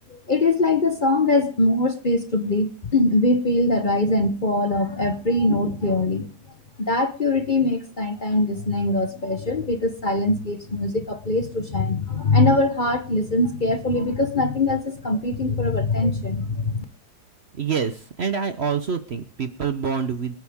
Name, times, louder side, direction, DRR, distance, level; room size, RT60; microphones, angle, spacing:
voice 1, 0.1-6.3 6.8-16.8, left 2 dB, 35° left, 8 dB, 1.0 m, -22 dB
voice 2, 17.5-20.4, right 6 dB, 45° right, 10 dB, 1.0 m, -26 dB
25.0 x 9.4 x 3.6 m, 0.35 s
omnidirectional pair, 1.8 m